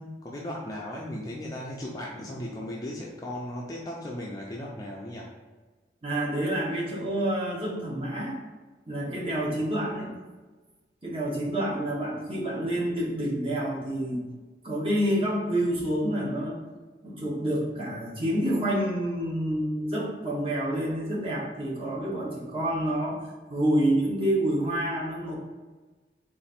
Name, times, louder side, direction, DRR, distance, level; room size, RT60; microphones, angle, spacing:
voice 1, 0.0-5.3, left 1 dB, 20° left, -3 dB, 0.4 m, -36 dB
voice 2, 6.0-8.4 8.9-10.1 11.0-14.2 14.6-16.6 17.0-23.2 23.5-25.3, right 1 dB, 30° right, -4 dB, 1.0 m, -28 dB
4.1 x 2.5 x 4.2 m, 1.3 s
head